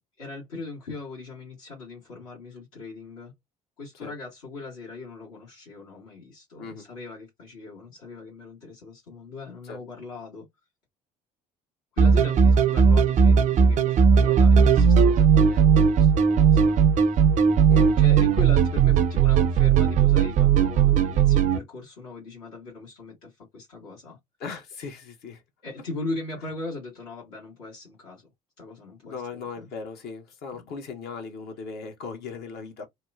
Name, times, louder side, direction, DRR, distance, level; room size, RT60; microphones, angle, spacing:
voice 1, 0.0-3.3 3.8-10.5 11.9-17.2 18.0-24.2 25.6-28.3 28.6-29.7 30.5-30.7, left 3 dB, 70° left, 1.3 m, -39 dB
voice 2, 6.6-6.9 9.7-9.8 17.7-18.0 24.4-25.4 29.0-32.9, left 5 dB, 50° left, 0.9 m, -38 dB
sound 1, 12.0-21.6, right 7 dB, 40° right, 0.4 m, -18 dB
2.8 x 2.1 x 2.3 m
figure-of-eight pair, 55°, 20 cm